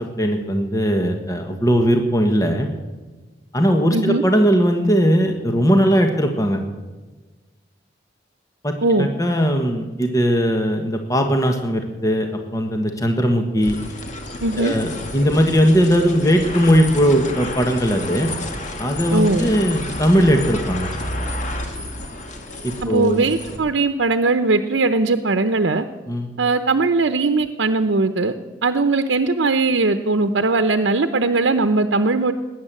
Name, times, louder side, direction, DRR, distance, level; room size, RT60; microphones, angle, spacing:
voice 1, 0.0-2.7 3.5-6.6 8.6-13.8 14.6-18.3 18.8-20.9 22.6-23.2 26.1-26.3, equal, 20° left, 4 dB, 1.4 m, -19 dB
voice 2, 3.9-4.2 8.8-9.1 14.4-14.7 19.1-19.5 22.8-25.8 26.4-28.3 28.6-32.3, right 3 dB, 90° right, 8 dB, 0.8 m, -19 dB
sound 1, 13.6-23.6, left 1 dB, 45° left, 2.1 m, -31 dB
19.5 x 9.6 x 7.6 m, 1.2 s
head